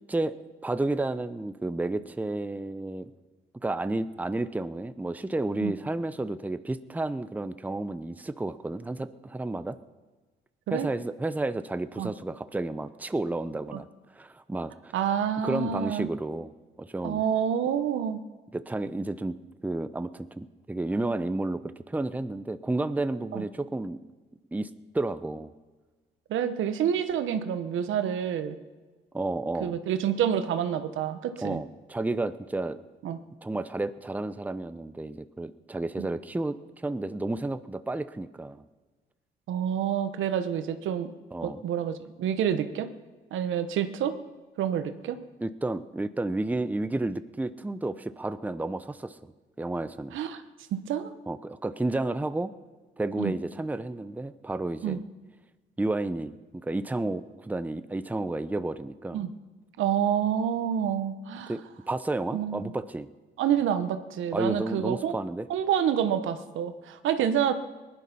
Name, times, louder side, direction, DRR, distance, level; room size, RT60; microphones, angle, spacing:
voice 1, 0.6-3.1 3.6-9.8 10.7-13.9 14.1-14.9 15.4-16.5 16.8-17.2 18.5-19.4 19.6-24.0 24.5-24.7 24.9-25.5 29.1-29.8 31.4-32.8 33.4-38.6 41.3-41.6 45.4-49.2 49.6-50.2 51.3-52.5 53.0-55.0 55.8-59.2 61.5-63.1 64.3-65.5, right 2 dB, 10° right, 12 dB, 0.6 m, -31 dB
voice 2, 14.9-16.1 17.0-18.2 23.3-23.4 26.3-28.6 29.6-31.6 33.0-33.2 36.0-36.1 39.5-41.1 41.4-42.9 43.3-44.1 44.6-45.2 50.1-50.4 50.7-51.1 53.2-53.3 54.8-55.0 59.1-59.3 59.8-61.5 62.3-62.7 63.4-65.1 65.5-67.5, right 9 dB, 80° right, 10 dB, 1.1 m, -28 dB
19.0 x 11.5 x 5.5 m, 1.3 s
cardioid pair, 90°, 20 cm